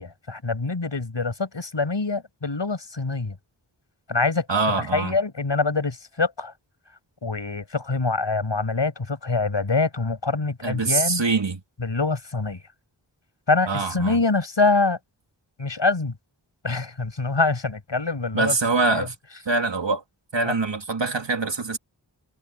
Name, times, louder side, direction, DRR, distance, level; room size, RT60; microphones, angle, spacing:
voice 1, 0.0-3.4 4.1-4.5 4.8-6.5 7.2-11.2 11.8-12.6 13.5-15.0 15.6-16.2 16.6-18.6 18.8-19.1 20.5-20.6, left 3 dB, 80° left, 7.0 m, -25 dB
voice 2, 4.5-5.2 10.6-11.6 13.7-14.2 18.3-19.1 19.5-20.0 20.3-21.8, right 3 dB, 80° right, 2.5 m, -24 dB
wide cardioid pair, 60°, 43 cm